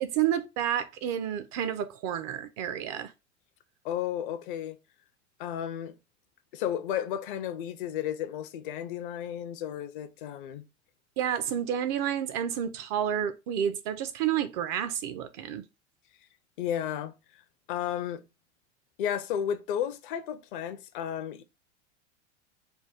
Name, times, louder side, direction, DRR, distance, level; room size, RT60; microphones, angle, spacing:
voice 1, 0.0-3.1 11.2-15.6, right 9 dB, 35° right, 0.4 m, -30 dB
voice 2, 3.8-4.8 5.4-6.0 6.5-10.7 16.6-17.4 17.7-18.2 19.0-21.4, left 10 dB, 45° left, 0.5 m, -33 dB
3.4 x 2.2 x 4.3 m
figure-of-eight pair, 85°, 36 cm